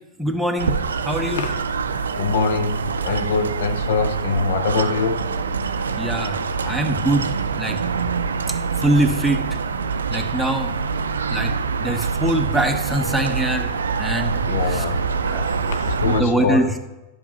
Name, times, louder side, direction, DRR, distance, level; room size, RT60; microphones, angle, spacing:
voice 1, 0.2-0.8 1.0-1.4 6.0-6.4 6.6-7.8 8.8-9.4 10.1-10.7 11.3-11.5 11.8-13.7 14.0-14.8 15.3-15.5 16.1-16.7, right 1 dB, ahead, 4 dB, 0.8 m, -23 dB
sound 1, 0.6-16.2, right 5 dB, 80° right, 0.4 m, -25 dB
voice 2, 2.1-5.2 8.0-8.1 14.5-15.0 15.6-16.7, left 4 dB, 65° left, 8 dB, 0.6 m, -23 dB
10.0 x 6.0 x 2.9 m, 1.0 s
hypercardioid pair, 95°, 0 cm